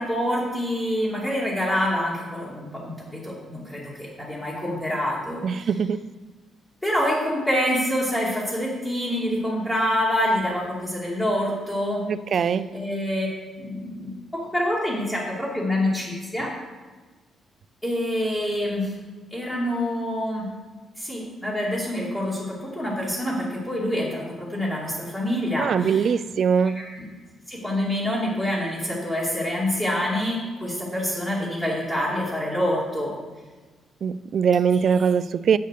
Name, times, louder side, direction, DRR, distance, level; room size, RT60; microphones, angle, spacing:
voice 1, 0.0-5.7 6.8-12.0 12.3-13.3 13.6-16.5 17.8-18.9 19.3-20.5 21.0-26.1 26.7-26.9 27.5-33.1 34.9-35.1, left 1 dB, 15° left, 2.9 m, -26 dB
voice 2, 5.4-6.1 12.1-12.8 25.6-26.8 34.0-35.6, right 6 dB, 55° right, 0.4 m, -22 dB
8.0 x 6.5 x 6.7 m
cardioid pair, 90°, 0 cm